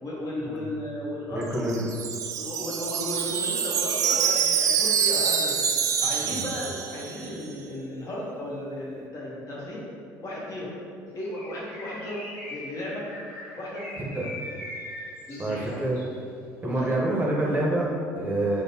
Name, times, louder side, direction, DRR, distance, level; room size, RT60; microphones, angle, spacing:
voice 1, 0.0-1.7 2.4-5.7 6.0-9.9 10.2-10.7 11.1-12.2 12.5-13.1 13.6-13.9 15.3-15.8 16.6-17.0, left 1 dB, 45° left, -5 dB, 1.1 m, -35 dB
voice 2, 1.3-1.8 6.2-6.5 14.1-14.4 15.4-16.0 16.6-18.6, right 1 dB, 25° right, -4 dB, 0.7 m, -27 dB
Wind chime, 1.4-7.4, right 7 dB, 50° right, 0.3 m, -26 dB
Bird, 11.2-16.2, left 1 dB, 80° left, 1.1 m, -41 dB
5.1 x 2.1 x 2.7 m, 2.3 s
supercardioid pair, 80°, 8 cm